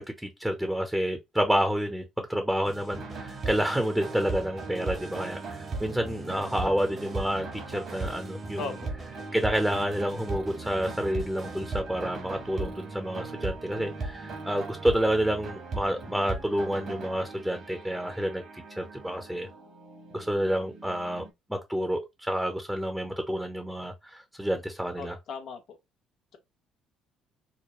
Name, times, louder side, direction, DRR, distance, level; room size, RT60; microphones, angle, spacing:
voice 1, 0.0-8.6 9.3-18.4 18.8-19.5 20.1-21.2 21.5-25.1, equal, 5° right, 1.0 m, -29 dB
sound 1, 2.6-11.8, right 4 dB, 45° right, 1.3 m, -46 dB
sound 2, 2.9-21.3, right 3 dB, 60° right, 1.8 m, -38 dB
voice 2, 8.6-8.9 25.0-25.8, left 4 dB, 65° left, 1.0 m, -37 dB
4.8 x 2.2 x 3.2 m
supercardioid pair, 65°, 0 cm